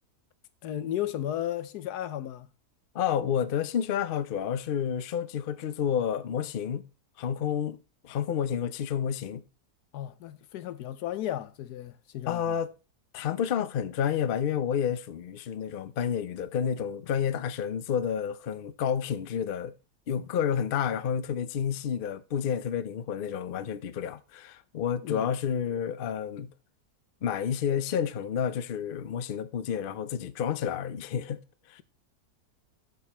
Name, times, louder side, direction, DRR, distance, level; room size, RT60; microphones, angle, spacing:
voice 1, 0.6-2.5 9.9-12.6 25.0-25.3, left 12 dB, 85° left, 1.3 m, -34 dB
voice 2, 2.9-6.8 7.2-7.8 8.0-9.4 12.3-12.7 13.1-19.7 20.1-26.5 27.2-31.4 31.7-31.8, left 8 dB, 55° left, 0.6 m, -30 dB
7.8 x 7.1 x 4.3 m
omnidirectional pair, 1.7 m